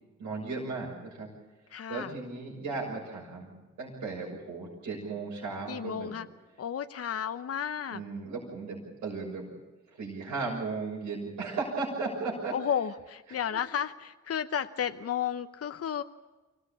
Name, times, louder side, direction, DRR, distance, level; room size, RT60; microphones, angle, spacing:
voice 1, 0.2-1.3 1.9-6.1 7.9-9.4 9.9-12.6 13.3-13.6, right 4 dB, 80° right, -5 dB, 6.4 m, -36 dB
voice 2, 1.7-2.1 5.7-6.3 6.6-8.0 12.5-16.0, left 8 dB, 50° left, 10 dB, 0.9 m, -32 dB
25.0 x 17.0 x 8.5 m, 1.2 s
supercardioid pair, 55°, 30 cm